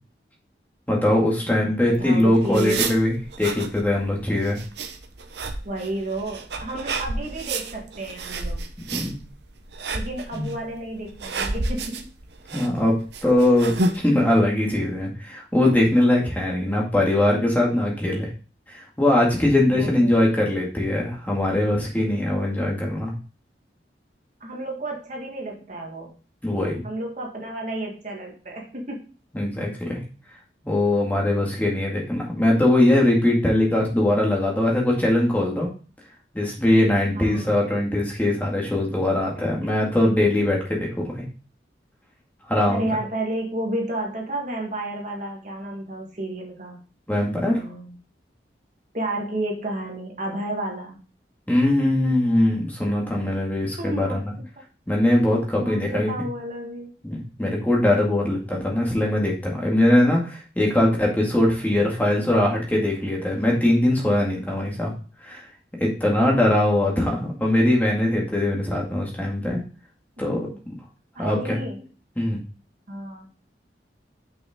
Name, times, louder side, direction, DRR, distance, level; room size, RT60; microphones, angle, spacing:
voice 1, 0.9-4.6 8.9-9.2 10.3-10.5 12.5-12.9 13.2-18.3 18.7-23.2 26.4-26.8 29.3-30.0 30.6-35.7 36.3-41.2 42.5-42.9 47.1-47.6 51.5-54.2 54.9-56.1 57.0-64.9 65.2-65.5 65.8-69.6 70.2-70.5 71.2-71.6 72.2-72.4, left 1 dB, 10° left, -2 dB, 2.0 m, -21 dB
sound 1, 1.9-14.0, right 2 dB, 70° right, 0.9 m, -31 dB
voice 2, 2.0-2.8 5.6-8.6 9.9-12.1 19.7-20.3 24.4-26.1 26.8-29.1 37.1-37.6 39.4-39.5 42.7-46.8 47.4-47.9 48.9-51.0 53.8-54.4 55.5-56.9 70.2-70.6 71.1-71.9 72.9-73.3, right 1 dB, 45° right, 0 dB, 1.6 m, -32 dB
6.2 x 5.8 x 3.6 m, 0.37 s
head